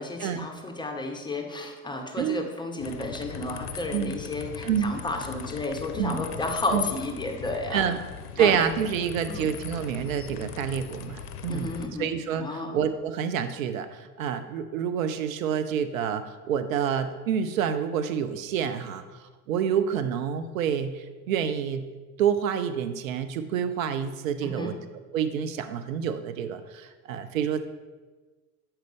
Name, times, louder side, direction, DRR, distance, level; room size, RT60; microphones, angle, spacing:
voice 1, 0.0-8.0 8.4-8.6 9.3-9.5 11.5-12.1 12.4-12.8 24.4-24.7, left 2 dB, 10° left, 2 dB, 0.6 m, -32 dB
sound 1, 2.8-11.9, left 8 dB, 80° left, 0.5 m, -39 dB
voice 2, 4.6-5.0 6.0-6.2 6.7-6.9 7.7-8.0 8.4-11.7 12.0-19.0 19.5-21.9 22.2-24.8 25.1-27.6, right 8 dB, 60° right, 10 dB, 0.5 m, -28 dB
7.6 x 4.4 x 3.5 m, 1.3 s
figure-of-eight pair, 75°, 47 cm